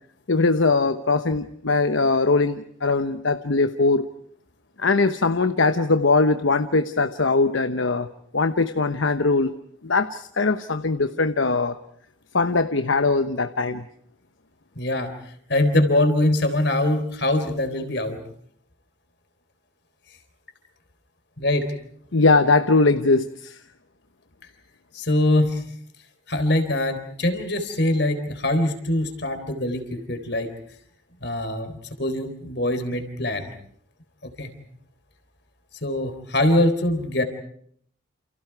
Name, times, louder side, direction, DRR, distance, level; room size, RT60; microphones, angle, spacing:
voice 1, 0.3-4.1 4.8-8.1 8.3-9.5 9.8-11.8 12.3-13.8 22.1-23.6, left 3 dB, 75° left, 9 dB, 1.0 m, -21 dB
voice 2, 14.8-15.1 15.5-18.2 21.4-21.7 24.9-25.6 26.3-30.5 31.2-33.5 34.2-34.5 35.8-37.2, left 1 dB, 55° left, 8 dB, 3.8 m, -23 dB
29.5 x 29.0 x 4.7 m, 0.64 s
head